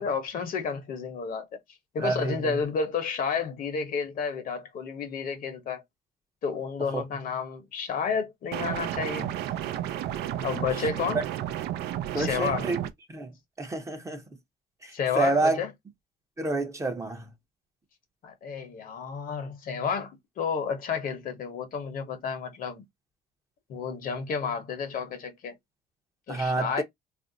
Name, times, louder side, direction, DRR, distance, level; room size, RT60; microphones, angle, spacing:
voice 1, 0.0-1.5 1.9-5.8 6.4-9.3 10.4-11.2 12.1-12.7 14.9-15.7 18.2-22.8 23.7-25.6 26.3-26.8, left 6 dB, 55° left, 0.9 m, -31 dB
voice 2, 2.0-2.6 6.9-7.0 11.1-11.3 12.1-12.8 13.1-14.2 14.8-15.6 16.4-17.3 26.3-26.8, right 3 dB, 15° right, 0.7 m, -29 dB
sound 1, 8.5-12.9, right 11 dB, 75° right, 0.5 m, -32 dB
2.5 x 2.0 x 3.8 m
cardioid pair, 110°, 17 cm